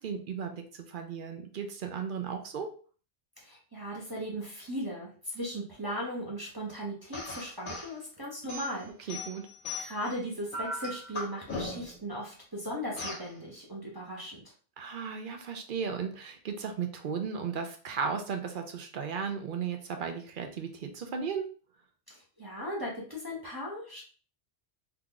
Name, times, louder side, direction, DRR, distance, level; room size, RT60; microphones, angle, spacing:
voice 1, 0.0-2.7 9.1-9.5 14.8-21.5, right 6 dB, 60° right, 5 dB, 0.6 m, -35 dB
voice 2, 3.4-9.1 9.8-14.4 22.1-24.0, equal, 25° right, -4 dB, 0.7 m, -37 dB
sound 1, 7.1-7.9 8.5-10.1 10.5-12.0 13.0-13.3, left 2 dB, 55° left, 0.9 m, -38 dB
2.9 x 2.4 x 3.6 m, 0.40 s
omnidirectional pair, 1.1 m